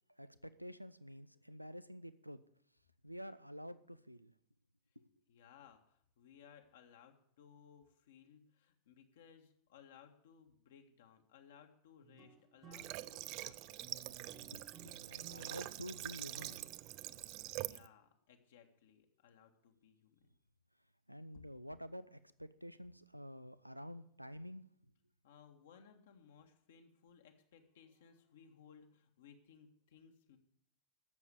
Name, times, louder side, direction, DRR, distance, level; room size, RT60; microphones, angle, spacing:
voice 1, 0.2-2.4 3.0-4.3 5.0-5.1 14.4-16.6 21.1-24.6, equal, 90° right, 14 dB, 0.6 m, -49 dB
voice 2, 5.3-13.9 17.3-20.4 25.2-30.4, left 7 dB, 60° left, 3 dB, 1.7 m, -62 dB
sound 1, 12.0-17.6, right 5 dB, 25° right, 1.3 m, -59 dB
Water / Water tap faucet, 12.7-17.9, right 18 dB, 45° right, 0.4 m, -45 dB
13.5 x 7.2 x 8.4 m, 0.69 s
figure-of-eight pair, 90°, 0 cm